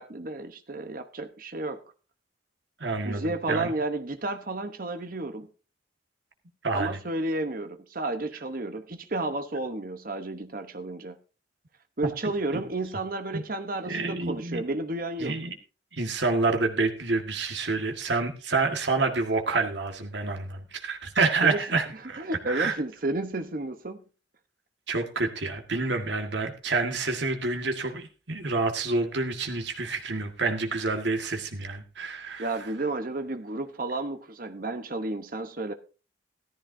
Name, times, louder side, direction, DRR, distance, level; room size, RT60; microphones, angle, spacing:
voice 1, 0.0-1.8 3.0-5.5 6.7-11.2 12.0-15.4 21.4-21.8 22.2-24.0 32.4-35.7, right 2 dB, 45° right, 1.0 m, -32 dB
voice 2, 2.8-3.7 6.6-7.0 12.2-12.6 13.3-13.4 13.8-14.6 15.2-15.6 15.9-22.8 24.9-32.5, right 3 dB, 70° right, 1.7 m, -28 dB
14.5 x 13.5 x 2.7 m
head